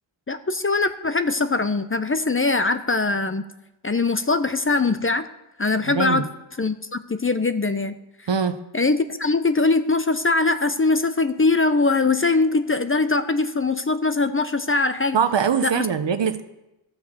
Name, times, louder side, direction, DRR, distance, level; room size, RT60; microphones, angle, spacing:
voice 1, 0.3-3.5 3.8-5.3 5.6-6.2 6.6-8.0 8.7-15.2 15.6-15.9, left 3 dB, 25° left, 11 dB, 0.6 m, -22 dB
voice 2, 5.9-6.2 8.3-8.6 15.1-16.4, right 6 dB, 60° right, 11 dB, 0.8 m, -22 dB
12.5 x 4.9 x 7.2 m, 0.97 s
cardioid pair, 45°, 49 cm